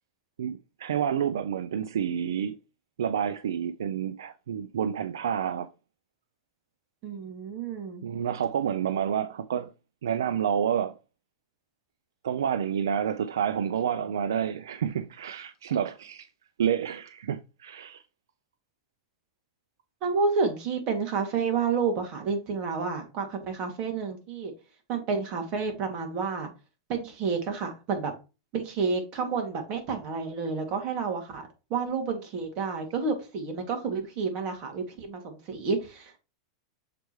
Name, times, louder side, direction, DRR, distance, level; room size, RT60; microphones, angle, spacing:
voice 1, 0.4-2.6 3.0-5.7 8.0-9.7 10.0-10.9 12.2-16.3 16.6-18.0, right 8 dB, 90° right, 0.4 m, -29 dB
voice 2, 7.0-8.0 20.0-24.5 24.9-26.5 26.9-28.1 28.5-36.2, right 5 dB, 45° right, 2.3 m, -30 dB
6.7 x 4.6 x 3.1 m
hypercardioid pair, 125°, 2 cm